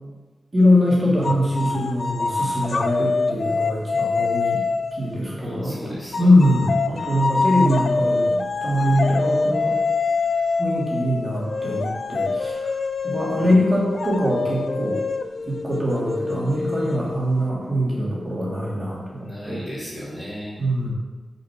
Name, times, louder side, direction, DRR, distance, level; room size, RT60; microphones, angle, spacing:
voice 1, 0.5-4.6 5.0-5.8 6.2-9.8 10.6-12.6 13.0-15.0 15.5-19.6 20.6-20.9, left 1 dB, 30° right, -6 dB, 2.9 m, -22 dB
sound 1, 1.2-5.1 6.1-17.4, left 4 dB, 55° left, 0.5 m, -25 dB
voice 2, 5.4-6.3 6.9-7.2 13.3-13.6 19.2-20.6, equal, 10° left, -10 dB, 3.1 m, -35 dB
6.4 x 5.9 x 6.4 m, 1.2 s
wide cardioid pair, 115°, 0 cm